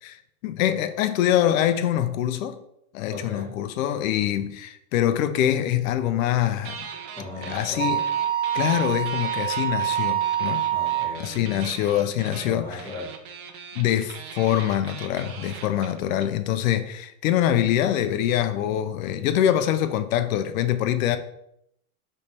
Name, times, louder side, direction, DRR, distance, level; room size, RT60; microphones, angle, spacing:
voice 1, 0.4-2.6 2.9-6.9 7.5-8.0 8.5-10.6 11.2-12.7 13.8-21.2, left 11 dB, 65° left, 0.6 m, -24 dB
voice 2, 3.1-3.6 7.2-7.9 10.7-11.6 12.2-13.2, left 2 dB, 5° left, 1.5 m, -37 dB
sound 1, 6.6-7.7 8.0-16.2, right 6 dB, 75° right, 0.8 m, -40 dB
Wind instrument woodwind instrument, 6.8-11.2, right 11 dB, 30° right, 0.8 m, -26 dB
3.3 x 3.2 x 4.2 m
supercardioid pair, 145°, 44 cm